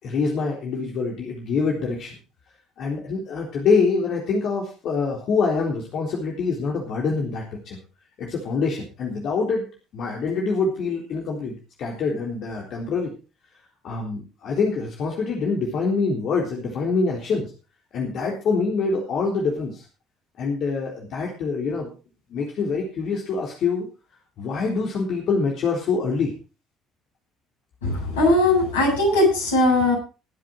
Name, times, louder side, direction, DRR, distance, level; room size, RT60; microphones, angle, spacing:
voice 1, 0.0-2.1 2.8-7.8 8.2-9.7 9.9-13.1 13.8-17.5 17.9-19.8 20.4-21.9 22.3-23.9 24.4-26.3, left 4 dB, 55° left, -1 dB, 3.8 m, -25 dB
voice 2, 27.8-30.0, left 2 dB, 80° left, -2 dB, 7.7 m, -19 dB
21.5 x 7.7 x 4.7 m, 0.34 s
figure-of-eight pair, 55°, 0 cm